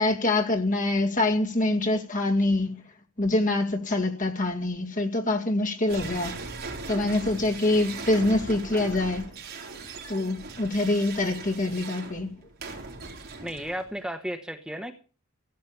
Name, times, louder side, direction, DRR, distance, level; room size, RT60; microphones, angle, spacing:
voice 1, 0.0-2.8 3.2-6.4 6.9-9.3 10.1-12.3, left 2 dB, 35° left, 2.3 m, -25 dB
sound 1, 5.9-14.0, right 3 dB, 45° right, 4.1 m, -39 dB
voice 2, 13.4-14.9, equal, 5° right, 1.1 m, -34 dB
16.5 x 9.3 x 6.9 m
head